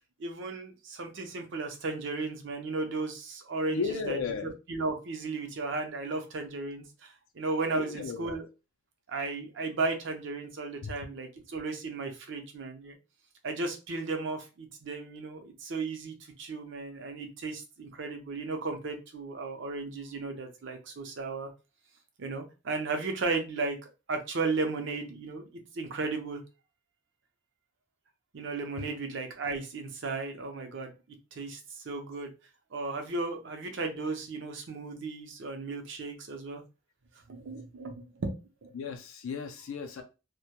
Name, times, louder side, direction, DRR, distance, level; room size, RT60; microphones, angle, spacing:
voice 1, 0.2-8.5 9.1-12.9 13.4-21.5 22.2-23.8 24.1-25.5 25.7-26.4 28.3-30.9 31.3-31.6 31.8-32.3 32.7-36.6 37.3-38.7, right 3 dB, 60° right, 5 dB, 0.6 m, -35 dB
voice 2, 3.7-4.5 7.7-8.3 10.8-11.0 28.8-28.9 38.7-40.0, left 5 dB, 80° left, 5 dB, 0.4 m, -35 dB
2.1 x 2.1 x 2.8 m, 0.29 s
head